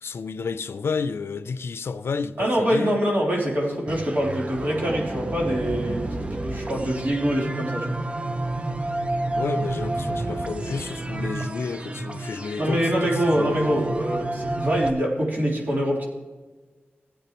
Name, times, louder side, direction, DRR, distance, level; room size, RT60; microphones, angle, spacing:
voice 1, 0.0-3.0 9.3-13.9, left 5 dB, 85° left, 0.5 m, -31 dB
voice 2, 2.4-8.0 12.6-16.1, equal, 50° right, 3.4 m, -24 dB
sound 1, 3.9-14.9, right 2 dB, 30° right, 0.6 m, -30 dB
17.0 x 8.5 x 3.0 m
wide cardioid pair, 100°, 4 cm